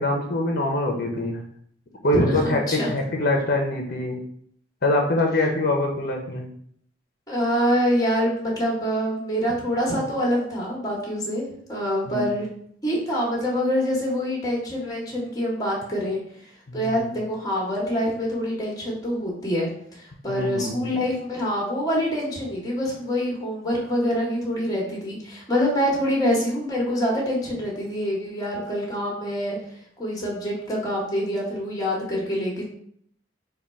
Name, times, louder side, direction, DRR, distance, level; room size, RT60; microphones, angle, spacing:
voice 1, 0.0-1.4 2.0-4.2 4.8-6.5 12.1-12.3 16.7-17.1 20.3-21.0, left 1 dB, 50° left, 2 dB, 0.7 m, -24 dB
voice 2, 2.1-2.9 7.3-12.5 12.8-16.2 16.7-29.6 30.0-32.7, equal, 20° left, -3 dB, 1.1 m, -25 dB
3.7 x 2.3 x 4.2 m, 0.66 s
head